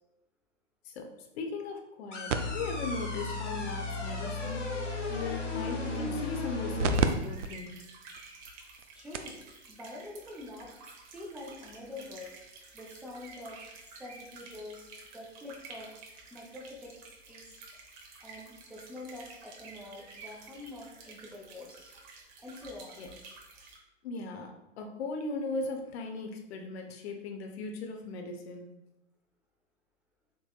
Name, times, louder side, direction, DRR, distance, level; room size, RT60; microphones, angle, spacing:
voice 1, 0.8-7.8 23.0-23.1 24.0-28.7, left 3 dB, 60° left, 3 dB, 0.8 m, -38 dB
sound 1, 2.1-7.1, left 2 dB, 85° left, 1.2 m, -38 dB
sound 2, 2.3-7.1 7.4-7.5 8.2-8.3 8.8-8.9 9.1-9.4 10.6-10.7, right 1 dB, 85° right, 0.5 m, -33 dB
sound 3, 6.9-23.8, right 3 dB, 40° right, 0.9 m, -51 dB
voice 2, 8.9-9.4 9.7-10.7 11.0-12.3 12.7-14.9 15.1-16.0 16.3-16.9 17.3-17.6 18.2-21.9 22.4-23.1, left 2 dB, 5° right, -3 dB, 0.3 m, -45 dB
4.2 x 3.8 x 2.3 m, 0.94 s
hypercardioid pair, 115°, 36 cm